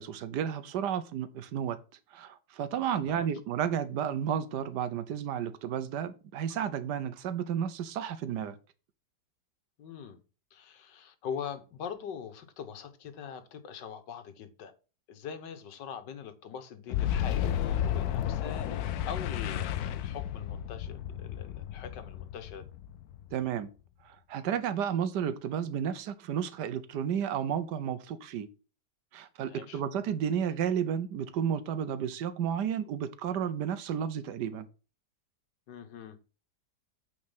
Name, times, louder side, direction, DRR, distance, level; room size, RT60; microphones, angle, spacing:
voice 1, 0.0-1.8 2.1-8.6 23.3-23.7 24.0-28.5 29.1-34.7, right 8 dB, 75° right, 1.4 m, -32 dB
voice 2, 9.8-10.2 10.5-14.7 15.1-22.7 29.5-29.8 35.7-36.2, left 7 dB, 85° left, 1.7 m, -42 dB
Boom, 16.9-23.5, left 10 dB, 70° left, 1.0 m, -32 dB
8.8 x 4.4 x 5.5 m
omnidirectional pair, 1.9 m